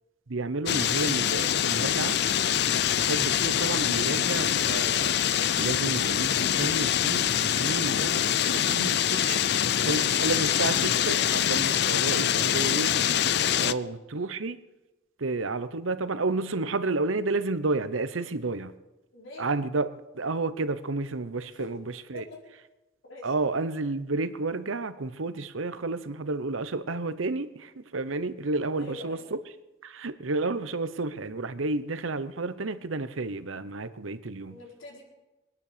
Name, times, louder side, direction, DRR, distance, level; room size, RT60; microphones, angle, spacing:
voice 1, 0.3-2.2 3.0-5.1 5.6-9.4 9.8-13.0 13.3-14.6 15.2-18.7 19.4-19.9 20.1-22.2 23.2-29.4 29.8-34.6, right 3 dB, 80° right, 13 dB, 0.9 m, -31 dB
sound 1, 0.7-13.7, left 9 dB, 55° left, 0.5 m, -25 dB
sound 2, 0.8-7.3, equal, ahead, 5.5 m, -54 dB
voice 2, 13.5-13.9 19.1-19.5 21.6-21.7 22.1-22.4 23.1-23.3 28.7-29.3 34.5-35.0, left 2 dB, 75° left, -1 dB, 4.5 m, -45 dB
21.5 x 9.7 x 6.8 m, 1.0 s
head